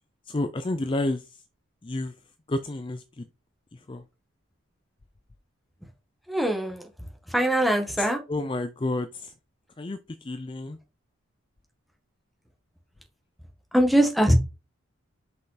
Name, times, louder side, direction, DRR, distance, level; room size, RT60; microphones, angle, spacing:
voice 1, 0.3-1.4 1.8-2.1 2.5-3.2 3.9-4.0 8.0-9.3 9.8-10.8, left 2 dB, 25° left, 0.4 m, -30 dB
voice 2, 6.3-6.8 7.3-8.2 13.7-14.3, right 1 dB, ahead, 1.5 m, -22 dB
6.3 x 5.5 x 4.1 m
head